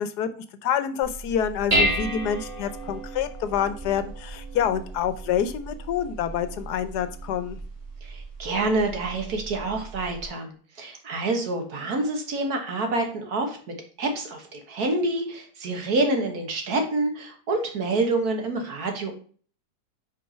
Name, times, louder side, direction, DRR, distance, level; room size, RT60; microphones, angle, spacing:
voice 1, 0.0-7.6, left 9 dB, 80° left, 12 dB, 1.3 m, -27 dB
Dishes pots and pans, 1.0-10.3, right 1 dB, 30° right, 1.9 m, -32 dB
voice 2, 8.0-13.6 14.0-19.1, right 2 dB, 70° right, 4 dB, 1.9 m, -27 dB
5.4 x 4.6 x 5.6 m, 0.43 s
omnidirectional pair, 1.7 m